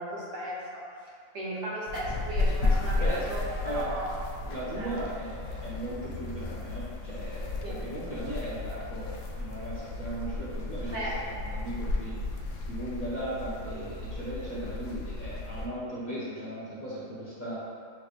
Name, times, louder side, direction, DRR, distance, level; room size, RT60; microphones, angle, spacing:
voice 1, 0.0-4.1 4.8-4.9 7.6-7.7 10.9-11.1, right 1 dB, 60° right, -6 dB, 1.2 m, -36 dB
sound 1, 1.9-15.7, left 2 dB, 70° left, 0.9 m, -33 dB
voice 2, 3.0-3.3 3.6-3.9 4.4-12.2 12.6-17.6, right 1 dB, 40° left, -9 dB, 0.8 m, -37 dB
6.8 x 3.1 x 2.4 m, 2.1 s
omnidirectional pair, 1.4 m